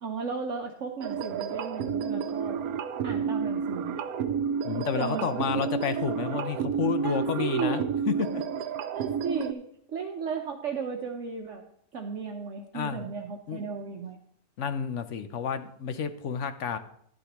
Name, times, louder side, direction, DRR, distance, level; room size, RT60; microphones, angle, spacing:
voice 1, 0.0-2.7 3.0-4.0 5.0-5.5 7.0-7.9 8.9-11.6 11.9-14.2, right 5 dB, 55° right, 1 dB, 1.2 m, -34 dB
sound 1, 1.0-9.5, right 7 dB, 85° right, 1.1 m, -31 dB
voice 2, 4.6-8.4 12.7-13.0 13.5-13.6 14.6-16.8, left 7 dB, 60° left, 10 dB, 1.0 m, -30 dB
11.5 x 11.5 x 3.0 m, 0.68 s
omnidirectional pair, 1.6 m